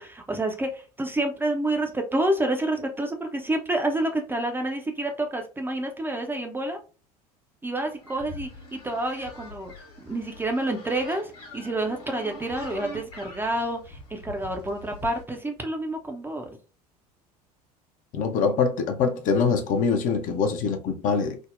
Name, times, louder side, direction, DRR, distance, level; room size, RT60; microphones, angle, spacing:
voice 1, 0.0-6.8 7.6-9.7 10.0-16.5, right 1 dB, 10° right, 0.5 m, -28 dB
sound 1, 7.9-15.2, left 1 dB, 65° left, 1.2 m, -44 dB
voice 2, 18.1-21.4, left 5 dB, 40° left, 0.6 m, -24 dB
3.5 x 2.0 x 2.4 m
figure-of-eight pair, 70°, 20 cm